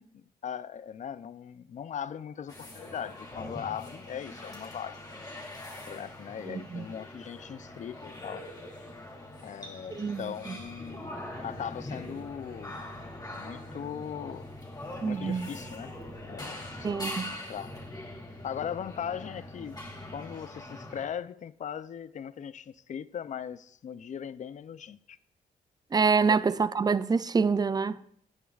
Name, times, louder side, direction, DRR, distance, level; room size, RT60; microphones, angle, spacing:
voice 1, 0.4-5.0 5.9-8.5 9.4-11.1 11.4-12.8 13.4-14.5 15.0-17.8 18.4-19.8 20.1-25.2 26.3-26.4, left 8 dB, 50° left, 0.4 m, -39 dB
sound 1, 2.5-21.1, left 1 dB, 25° left, 2.3 m, -42 dB
voice 2, 6.5-6.8 10.0-10.6 15.0-15.5 16.8-17.3 25.9-28.0, right 5 dB, 25° right, 0.4 m, -26 dB
17.0 x 9.2 x 2.4 m
cardioid pair, 95°, 16 cm